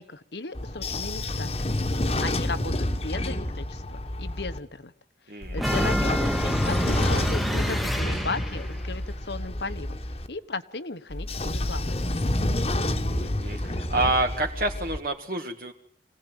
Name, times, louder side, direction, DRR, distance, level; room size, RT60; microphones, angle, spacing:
voice 1, 0.0-1.8 2.2-4.9 5.5-10.0 10.3-12.2, left 3 dB, 75° left, 12 dB, 1.3 m, -36 dB
Train / Sliding door, 0.5-4.6 5.4-10.3 11.1-15.0, left 1 dB, 35° left, 1.4 m, -28 dB
voice 2, 5.3-5.8 13.1-15.7, right 2 dB, 55° right, 2 dB, 1.8 m, -28 dB
sound 1, 5.6-8.8, equal, ahead, 1.2 m, -28 dB
25.5 x 17.5 x 9.1 m, 0.67 s
head